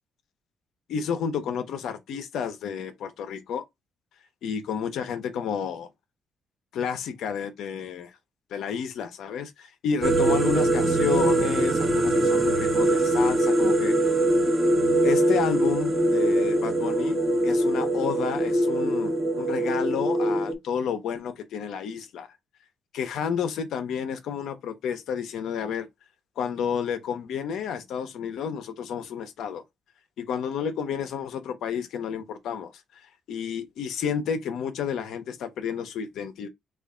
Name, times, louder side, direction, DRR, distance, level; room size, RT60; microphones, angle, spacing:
voice 1, 0.9-3.6 4.4-5.9 6.7-8.1 8.5-14.0 15.0-22.3 22.9-25.9 26.4-29.6 30.2-32.7 33.3-36.5, left 7 dB, 80° left, 0.7 m, -31 dB
sound 1, 10.0-20.5, right 1 dB, 25° right, 0.8 m, -22 dB
3.3 x 2.5 x 3.7 m
cardioid pair, 90°, 0 cm